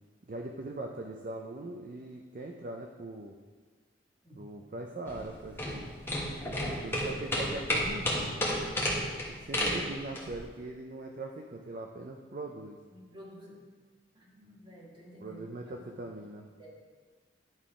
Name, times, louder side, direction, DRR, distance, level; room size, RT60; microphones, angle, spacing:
voice 1, 0.3-3.3 4.3-5.9 6.4-8.4 9.3-12.8 15.2-16.5, right 2 dB, 45° right, 2 dB, 0.5 m, -41 dB
sound 1, 5.1-10.4, left 1 dB, 15° left, 1.2 m, -32 dB
voice 2, 12.9-13.6 14.1-15.4 15.8-15.9 16.1-16.2 16.6-16.7, equal, 25° right, -5 dB, 1.9 m, -51 dB
10.5 x 3.8 x 4.8 m, 1.5 s
head